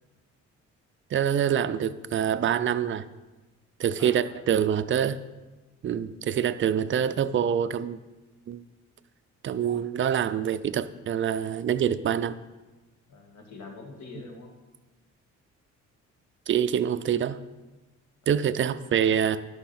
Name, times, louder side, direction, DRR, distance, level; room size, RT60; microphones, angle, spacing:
voice 1, 1.1-3.1 3.8-5.2 5.8-8.0 8.5-8.6 9.4-12.4 16.5-17.4 18.3-19.4, right 9 dB, 40° right, 14 dB, 0.4 m, -25 dB
voice 2, 4.0-4.4 13.1-14.5 18.2-18.4, left 3 dB, 60° left, 2 dB, 1.7 m, -44 dB
10.5 x 6.2 x 4.3 m, 1.2 s
cardioid pair, 90°, 30 cm